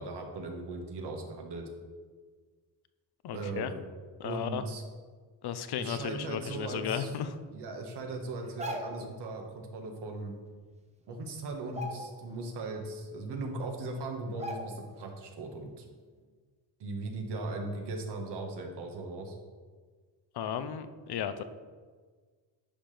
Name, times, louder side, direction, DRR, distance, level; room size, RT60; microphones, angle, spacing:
voice 1, 0.0-1.7 3.3-3.8 4.2-4.8 5.8-7.1 7.5-10.3 11.1-15.8 16.8-19.4, right 2 dB, 65° right, 3 dB, 1.5 m, -38 dB
voice 2, 3.2-3.7 4.2-4.6 5.4-7.4 20.3-21.4, left 8 dB, 60° left, 11 dB, 0.7 m, -34 dB
sound 1, 8.4-9.1 10.6-10.7 11.0-11.2 11.6-12.5 12.9-13.0 13.7-13.8 14.4-15.0 15.4-15.5, equal, 15° right, 0.9 m, -40 dB
10.5 x 5.9 x 3.4 m, 1.5 s
cardioid pair, 125°, 43 cm